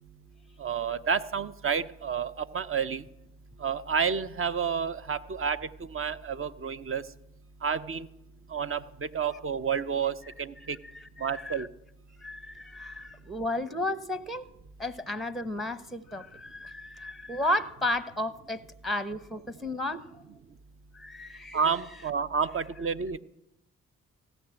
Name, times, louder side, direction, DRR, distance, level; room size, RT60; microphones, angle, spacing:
voice 1, 0.6-3.0 3.6-7.0 7.6-8.1 8.5-10.8 11.2-11.7 21.5-23.2, right 6 dB, 35° right, 13 dB, 0.7 m, -30 dB
voice 2, 10.6-11.7 12.2-14.4 14.8-20.0 20.9-21.6, left 1 dB, ahead, 15 dB, 0.9 m, -33 dB
16.0 x 6.3 x 9.0 m, 0.84 s
hypercardioid pair, 40°, 35 cm